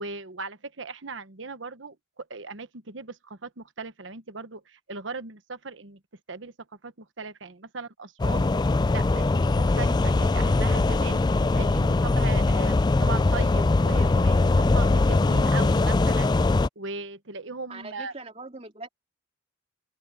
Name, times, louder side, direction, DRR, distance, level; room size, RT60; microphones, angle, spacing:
voice 1, 0.0-6.0 6.3-6.5 6.8-8.5 8.9-11.2 11.5-16.3 16.8-18.1, right 4 dB, 75° right, 1.2 m, -38 dB
sound 1, 8.2-16.7, left 2 dB, 20° left, 0.3 m, -22 dB
voice 2, 17.7-18.9, right 3 dB, 30° right, 3.0 m, -41 dB
open air
head